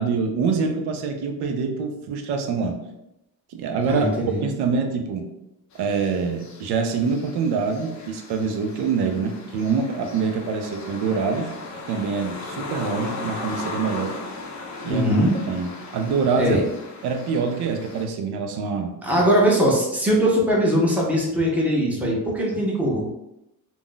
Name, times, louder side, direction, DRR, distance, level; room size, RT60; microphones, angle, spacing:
voice 1, 0.0-2.8 3.5-4.1 4.4-5.3 5.7-11.6 11.9-14.2 14.8-15.1 15.5-16.6 17.0-19.3, right 5 dB, 85° right, 4 dB, 0.5 m, -25 dB
voice 2, 3.8-4.4 14.9-15.3 16.4-16.6 19.0-23.1, equal, 5° right, -3 dB, 0.6 m, -20 dB
sound 1, 5.7-18.0, left 3 dB, 50° left, 0.5 m, -37 dB
2.4 x 2.0 x 3.7 m, 0.87 s
cardioid pair, 135°, 38 cm